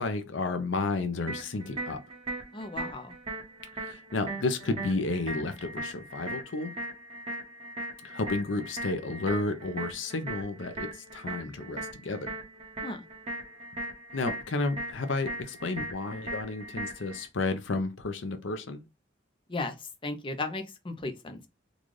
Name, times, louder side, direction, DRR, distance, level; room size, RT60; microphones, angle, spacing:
voice 1, 0.0-2.0 3.8-6.7 8.0-12.3 14.1-18.8, left 3 dB, 80° left, 0.6 m, -32 dB
sound 1, 1.3-17.3, right 1 dB, 30° right, 1.3 m, -39 dB
voice 2, 2.5-3.1 12.8-13.0 19.5-19.7 20.0-21.5, left 2 dB, 25° left, 0.6 m, -35 dB
3.9 x 2.4 x 3.1 m
head